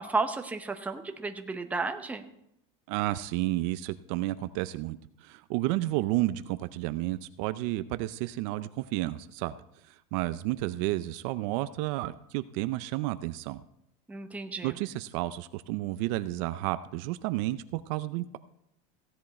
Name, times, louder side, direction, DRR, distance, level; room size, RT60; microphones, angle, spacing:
voice 1, 0.0-2.2 14.1-14.7, right 3 dB, 10° right, 6 dB, 0.9 m, -33 dB
voice 2, 2.9-9.6 9.9-13.6 14.6-18.4, right 16 dB, 60° right, 13 dB, 0.5 m, -31 dB
16.0 x 10.0 x 4.2 m, 0.79 s
supercardioid pair, 150°, 18 cm